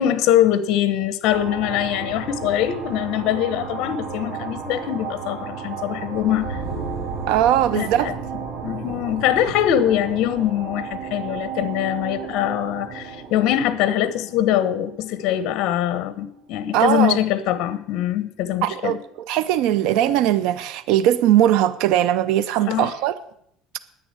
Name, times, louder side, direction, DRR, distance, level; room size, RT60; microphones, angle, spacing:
voice 1, 0.0-6.6 7.7-8.2 8.6-19.0 22.7-22.9, left 11 dB, 65° left, 1.0 m, -23 dB
sound 1, 1.2-15.4, right 5 dB, 50° right, 3.2 m, -33 dB
voice 2, 7.3-8.1 16.7-17.2 18.6-19.0 19.3-23.2, right 12 dB, 75° right, 0.6 m, -19 dB
10.0 x 8.9 x 7.7 m
cardioid pair, 145°, 0 cm